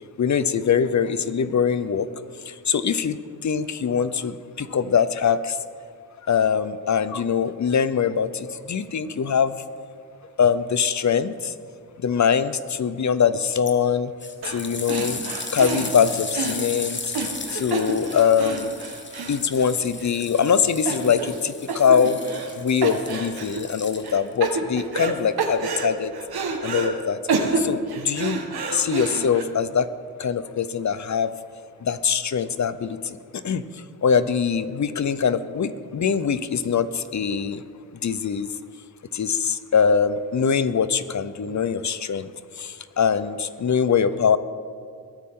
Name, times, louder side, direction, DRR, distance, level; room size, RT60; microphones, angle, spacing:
voice 1, 0.2-2.1 2.5-5.6 6.3-9.5 10.4-11.5 12.0-14.1 14.4-15.2 15.5-17.0 17.5-18.7 19.3-22.2 22.6-26.1 26.6-27.2 27.6-28.4 28.7-29.9 30.2-31.3 31.8-33.2 33.4-33.6 34.0-37.6 38.0-38.5 39.1-42.3 42.6-44.4, left 7 dB, 50° left, 13 dB, 0.8 m, -23 dB
sound 1, 13.5-13.7 14.2-24.4 25.1-25.2, left 3 dB, 30° left, 1.3 m, -36 dB
sound 2, 14.4-14.6 14.9-20.1 20.4-20.5 20.9-21.4 21.7-22.5 22.8-23.6 24.0-25.1 25.4-26.9 27.3-29.4, right 4 dB, 85° right, 1.8 m, -28 dB
22.0 x 14.5 x 3.9 m, 2.1 s
wide cardioid pair, 110°, 37 cm